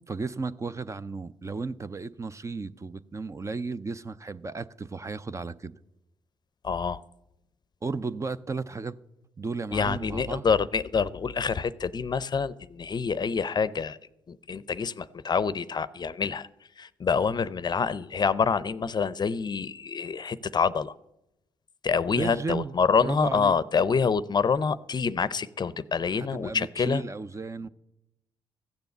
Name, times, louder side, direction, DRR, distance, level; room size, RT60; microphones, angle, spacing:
voice 1, 0.1-5.7 7.8-9.0 9.4-10.5 22.2-23.6 26.1-27.7, right 4 dB, 25° right, 0.6 m, -34 dB
voice 2, 6.6-7.0 9.7-14.0 14.3-16.5 16.8-20.9 21.8-27.0, left 5 dB, 40° left, 0.6 m, -26 dB
15.0 x 6.9 x 7.9 m
supercardioid pair, 55°, 11 cm